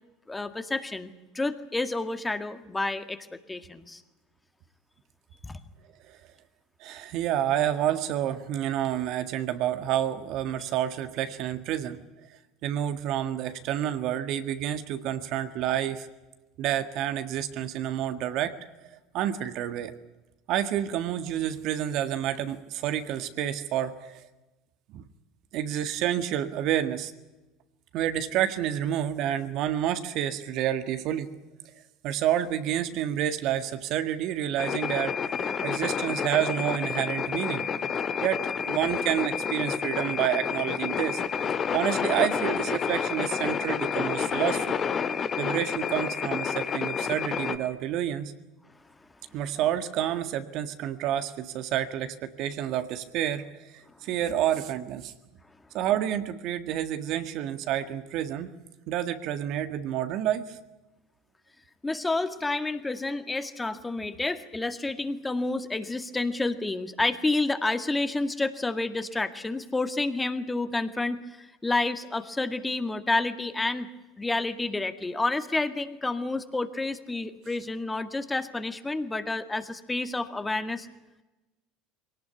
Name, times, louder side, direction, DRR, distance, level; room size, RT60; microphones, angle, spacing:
voice 1, 0.3-4.0 5.4-5.6 61.8-73.9 74.2-80.9, left 2 dB, 15° left, 9 dB, 2.0 m, -29 dB
voice 2, 6.8-12.0 12.6-16.1 16.6-18.5 19.1-19.9 20.5-24.3 24.9-25.0 25.5-27.1 27.9-31.3 32.0-37.6 38.2-41.2 41.7-44.8 45.4-48.3 49.3-55.1 55.7-58.5 58.9-60.6, right 11 dB, 60° right, 10 dB, 1.8 m, -29 dB
sound 1, 34.6-47.6, left 7 dB, 40° left, 1.7 m, -29 dB
23.0 x 18.0 x 10.0 m, 1.1 s
hypercardioid pair, 70°, 0 cm